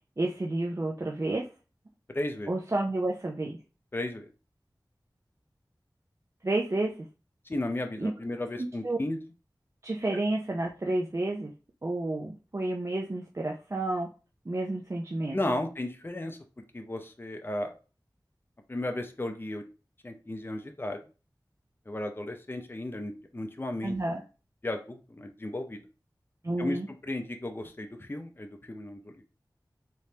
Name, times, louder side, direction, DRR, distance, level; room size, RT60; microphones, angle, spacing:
voice 1, 0.2-1.5 2.5-3.6 6.4-7.0 8.0-8.1 8.6-9.0 9.8-11.5 11.8-14.1 14.5-15.4 23.8-24.2 26.4-26.9, right 2 dB, 40° right, 1 dB, 0.5 m, -30 dB
voice 2, 2.1-2.5 3.9-4.3 7.5-9.2 15.3-17.8 18.7-19.6 20.0-21.0 21.9-24.0 24.6-25.8 26.6-26.8 27.0-29.2, left 1 dB, 30° left, 5 dB, 0.5 m, -34 dB
3.4 x 3.1 x 2.7 m, 0.33 s
wide cardioid pair, 50°, 8 cm